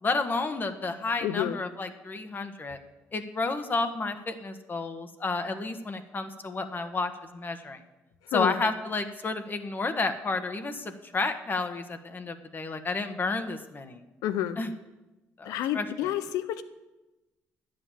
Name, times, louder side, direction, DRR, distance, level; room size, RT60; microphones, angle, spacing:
voice 1, 0.0-2.8 3.1-7.8 8.3-14.0 14.6-14.7 15.4-16.1, left 3 dB, 35° left, 8 dB, 1.3 m, -31 dB
voice 2, 1.2-1.6 8.3-8.5 14.2-14.6 15.4-16.6, left 11 dB, 80° left, 13 dB, 0.8 m, -29 dB
11.0 x 7.9 x 7.3 m, 1.0 s
supercardioid pair, 70°, 6 cm